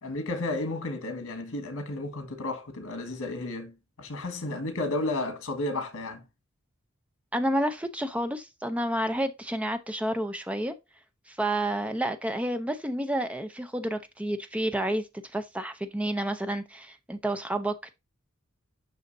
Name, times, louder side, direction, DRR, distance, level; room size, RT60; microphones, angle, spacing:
voice 1, 0.0-6.2, left 2 dB, 85° left, 1.6 m, -33 dB
voice 2, 7.3-10.7 11.3-15.1 15.3-17.9, right 1 dB, 5° right, 0.6 m, -30 dB
6.6 x 5.7 x 2.6 m
head